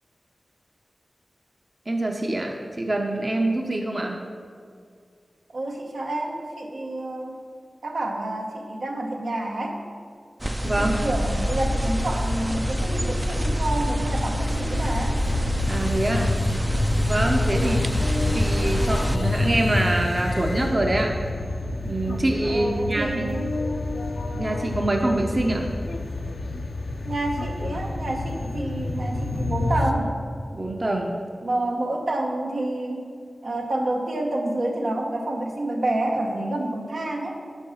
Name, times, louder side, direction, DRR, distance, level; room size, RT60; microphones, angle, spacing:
voice 1, 1.9-4.2 10.6-11.0 15.7-16.3 17.1-17.9 18.3-21.2 21.8-23.2 24.3-25.7 30.5-31.1, right 1 dB, 40° right, 2 dB, 0.7 m, -25 dB
voice 2, 5.5-7.4 7.8-9.8 10.8-15.2 17.5-17.9 22.5-23.5 27.0-30.2 31.4-33.0 33.4-37.4, right 1 dB, 80° right, 0 dB, 0.9 m, -28 dB
sound 1, 10.4-19.2, equal, 15° right, 0.3 m, -27 dB
sound 2, 10.6-29.9, left 2 dB, 75° left, 0.5 m, -28 dB
7.1 x 4.6 x 5.8 m, 2.1 s
wide cardioid pair, 55°, 0 cm